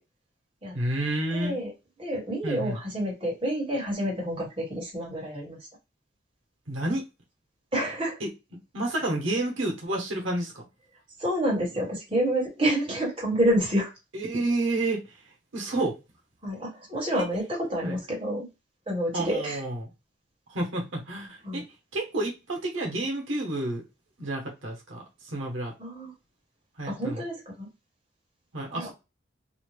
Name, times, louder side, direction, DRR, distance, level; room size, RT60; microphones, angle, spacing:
voice 1, 0.7-1.6 2.4-2.8 6.7-7.0 8.2-8.3 8.7-10.7 14.1-15.0 15.5-16.0 17.2-17.3 17.8-17.9 19.1-19.9 20.5-21.6 21.9-23.8 24.2-25.7 26.8-27.2 28.5-28.9, right 2 dB, 90° right, 0 dB, 1.0 m, -30 dB
voice 2, 1.3-1.7 2.0-5.6 7.7-8.2 11.2-13.9 16.4-18.5 18.9-19.6 21.4-21.6 25.8-26.1 26.8-27.7 28.7-28.9, right 1 dB, 30° right, -3 dB, 1.3 m, -28 dB
2.7 x 2.2 x 3.1 m, 0.26 s
head